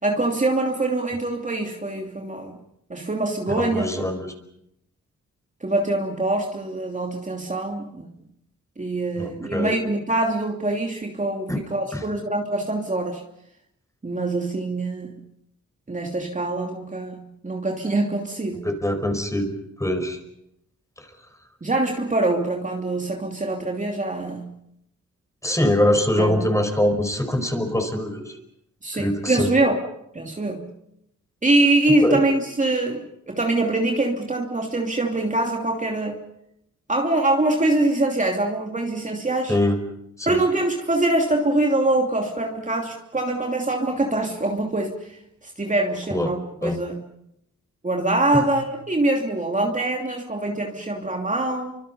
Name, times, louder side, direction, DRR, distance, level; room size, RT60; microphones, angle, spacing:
voice 1, 0.0-2.6 2.9-4.1 5.6-8.1 8.8-13.2 14.0-15.2 15.9-18.7 21.6-24.5 26.2-26.5 28.8-29.8 30.1-30.7 31.4-36.2 36.9-39.6 40.3-45.2 45.4-46.9 47.8-51.8, right 2 dB, 25° right, 1 dB, 2.8 m, -24 dB
voice 2, 3.5-4.3 9.2-9.8 11.5-11.6 11.9-12.0 18.6-19.5 19.8-20.2 21.0-21.1 25.4-28.4 28.9-29.5 31.9-32.2 39.5-39.8 40.2-40.4 46.1-46.3 46.6-46.8 48.3-48.5, left 1 dB, 10° left, 6 dB, 5.0 m, -23 dB
29.0 x 25.5 x 5.5 m, 0.77 s
cardioid pair, 75°, 29 cm